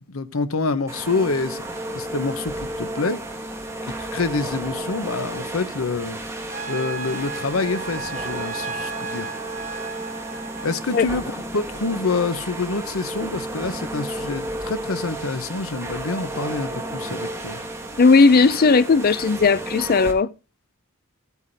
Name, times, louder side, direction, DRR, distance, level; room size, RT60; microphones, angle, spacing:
voice 1, 0.1-3.2 3.8-6.2 6.7-9.3 10.6-17.6, left 3 dB, 90° left, 0.9 m, -27 dB
sound 1, 0.9-20.1, right 1 dB, 15° right, 1.4 m, -32 dB
Trumpet, 6.5-10.9, right 4 dB, 40° right, 1.0 m, -34 dB
voice 2, 18.0-20.3, left 4 dB, 45° left, 0.5 m, -16 dB
16.0 x 8.2 x 2.7 m
head